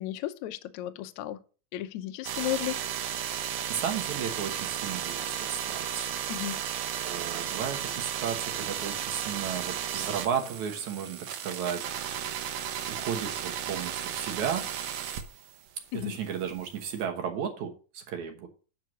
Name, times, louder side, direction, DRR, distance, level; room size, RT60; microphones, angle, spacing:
voice 1, 0.0-1.4 1.7-2.8 6.3-6.6 15.9-16.1, left 13 dB, 85° left, 9 dB, 1.6 m, -34 dB
sound 1, 2.2-15.7 16.0-17.0, right 9 dB, 80° right, 1.5 m, -34 dB
voice 2, 3.7-6.1 7.0-11.8 12.9-14.6 16.0-18.5, right 8 dB, 65° right, 4 dB, 2.3 m, -34 dB
9.2 x 4.6 x 6.2 m, 0.36 s
omnidirectional pair, 4.2 m